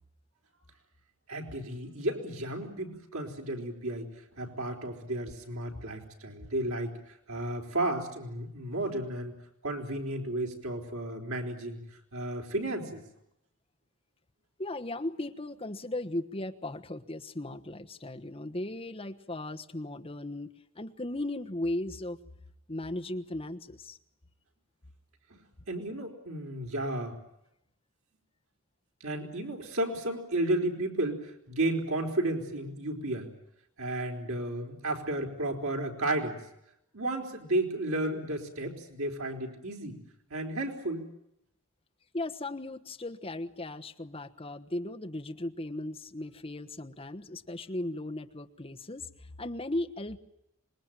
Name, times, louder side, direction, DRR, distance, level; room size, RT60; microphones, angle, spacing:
voice 1, 1.3-4.1 4.3-9.3 9.6-11.8 12.1-13.0 25.3-25.4 25.7-27.2 29.0-33.3 33.8-36.4 36.9-40.0 40.3-41.0, right 1 dB, 90° right, 2 dB, 4.4 m, -33 dB
voice 2, 14.6-22.2 22.7-24.0 42.1-50.2, left 1 dB, 25° left, 5 dB, 1.2 m, -37 dB
26.5 x 21.5 x 9.0 m, 0.80 s
head